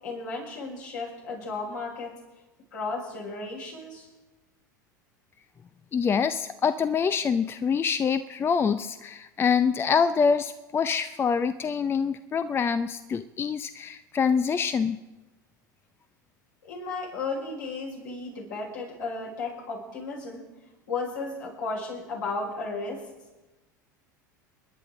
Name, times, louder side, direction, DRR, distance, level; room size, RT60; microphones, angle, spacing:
voice 1, 0.0-2.2 2.7-4.1 16.6-20.5 20.9-23.0, left 3 dB, 70° left, -3 dB, 5.3 m, -34 dB
voice 2, 5.9-15.0, left 6 dB, 25° left, 13 dB, 0.5 m, -25 dB
29.0 x 10.5 x 3.8 m, 1.1 s
figure-of-eight pair, 75°, 10 cm